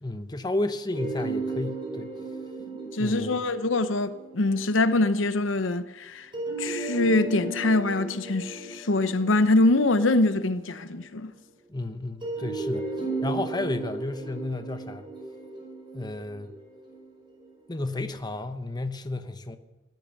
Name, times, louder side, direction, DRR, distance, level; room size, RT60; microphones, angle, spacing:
voice 1, 0.0-2.1 3.0-3.4 11.7-12.9 13.2-15.1 15.9-16.5 17.7-19.6, left 2 dB, 20° left, 0.9 m, -32 dB
sound 1, 0.9-4.8 6.3-10.8 12.2-17.4, right 2 dB, 25° right, 4.9 m, -35 dB
voice 2, 2.7-6.3 6.6-11.3, left 2 dB, 80° left, 0.8 m, -24 dB
18.0 x 12.0 x 6.5 m
head